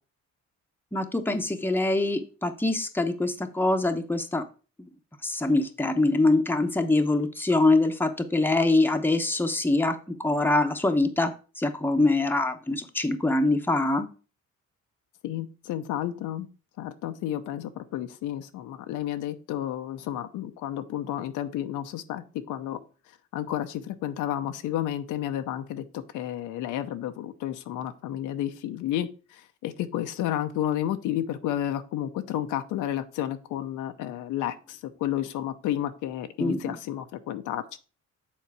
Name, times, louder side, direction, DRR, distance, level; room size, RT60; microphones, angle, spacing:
voice 1, 0.9-4.5 5.2-14.1 36.4-36.8, left 2 dB, 5° left, 6 dB, 0.9 m, -24 dB
voice 2, 15.2-16.5 16.8-22.8 23.3-37.8, left 11 dB, 90° left, 8 dB, 0.8 m, -31 dB
7.4 x 3.9 x 4.6 m, 0.36 s
cardioid pair, 90°, 30 cm